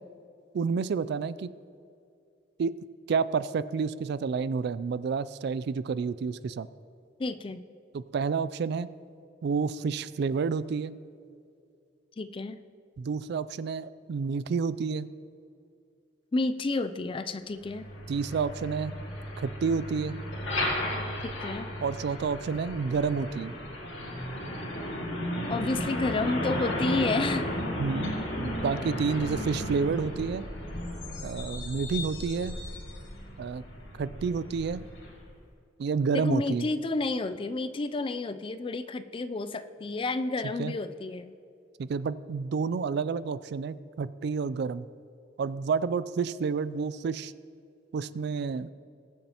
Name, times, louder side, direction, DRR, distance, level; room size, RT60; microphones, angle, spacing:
voice 1, 0.5-1.5 2.6-2.8 3.1-6.7 7.9-8.9 9.4-11.0 13.0-15.1 18.1-18.9 19.4-20.2 21.8-23.6 27.8-30.4 31.2-32.6 33.4-33.6 34.0-34.8 35.8-36.7 40.6-40.7 41.8-44.9 45.4-47.3 47.9-48.7, right 5 dB, 60° right, 16 dB, 0.3 m, -29 dB
voice 2, 7.2-7.6 12.2-12.6 16.3-17.9 21.2-21.7 25.5-27.5 36.1-41.3, left 3 dB, 30° left, 12 dB, 0.4 m, -30 dB
Truck, 17.6-35.3, left 1 dB, 75° left, 2.2 m, -34 dB
20.5 x 7.1 x 2.9 m, 2.5 s
head